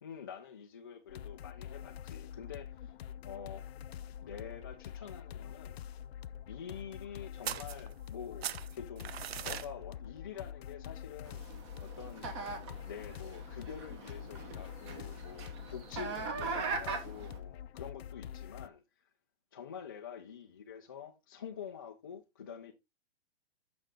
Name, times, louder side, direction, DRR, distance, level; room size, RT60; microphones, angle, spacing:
voice 1, 0.0-2.9 3.2-3.7 4.2-5.8 6.5-11.4 11.8-12.3 12.8-19.1 19.5-22.7, left 7 dB, 20° left, 0.4 m, -47 dB
sound 1, 1.1-18.7, left 9 dB, 65° left, 0.6 m, -46 dB
sound 2, 7.4-8.2 8.4-9.7, right 10 dB, 65° right, 0.6 m, -39 dB
sound 3, 11.3-17.4, right 4 dB, 25° right, 1.2 m, -41 dB
9.0 x 6.2 x 3.7 m
hypercardioid pair, 170°, 33 cm